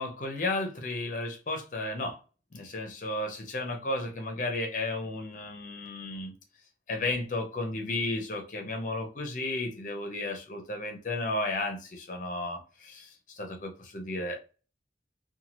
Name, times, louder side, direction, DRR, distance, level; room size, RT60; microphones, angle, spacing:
voice 1, 0.0-2.2 2.5-6.3 6.9-14.4, left 2 dB, 45° left, 3 dB, 0.6 m, -33 dB
2.7 x 2.3 x 3.0 m, 0.35 s
head